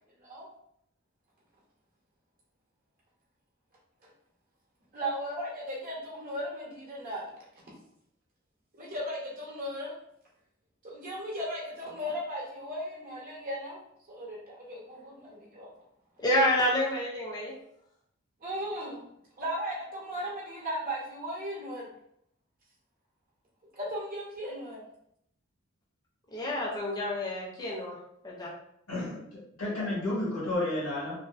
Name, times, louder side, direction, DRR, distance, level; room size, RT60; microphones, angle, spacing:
voice 1, 4.9-7.3 8.8-9.9 10.8-13.8 14.1-15.7 18.4-19.0 19.4-21.9 23.7-24.8, equal, 45° right, -4 dB, 0.8 m, -36 dB
voice 2, 16.2-17.5 26.3-28.0 28.2-28.5, left 1 dB, 20° left, -4 dB, 0.5 m, -28 dB
voice 3, 28.9-31.1, left 1 dB, 85° left, -7 dB, 1.2 m, -32 dB
2.5 x 2.4 x 2.4 m, 0.72 s
head